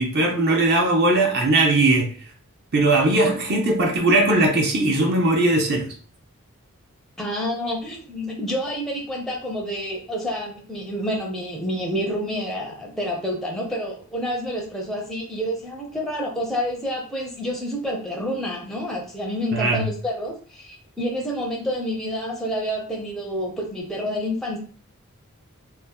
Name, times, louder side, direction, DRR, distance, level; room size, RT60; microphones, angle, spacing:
voice 1, 0.0-2.1 2.7-5.9 19.5-19.9, right 2 dB, 45° right, 1 dB, 0.5 m, -19 dB
voice 2, 3.0-3.3 7.2-24.6, equal, ahead, -1 dB, 0.5 m, -28 dB
2.8 x 2.0 x 3.4 m, 0.43 s
head